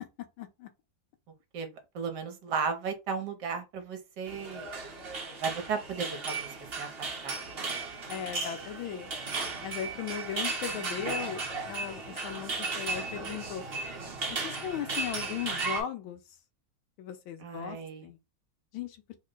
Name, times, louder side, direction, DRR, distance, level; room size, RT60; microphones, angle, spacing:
voice 1, 0.4-0.7 8.1-9.1 9.6-13.6 14.3-16.2 17.0-18.2 18.7-19.0, left 9 dB, 80° left, 1.5 m, -37 dB
voice 2, 1.5-4.7 5.4-6.5 6.8-7.7 17.4-18.1, right 5 dB, 65° right, 1.3 m, -35 dB
Air Hockey Distance, 4.3-15.8, right 3 dB, 50° right, 0.7 m, -35 dB
3.6 x 2.1 x 3.7 m
omnidirectional pair, 2.2 m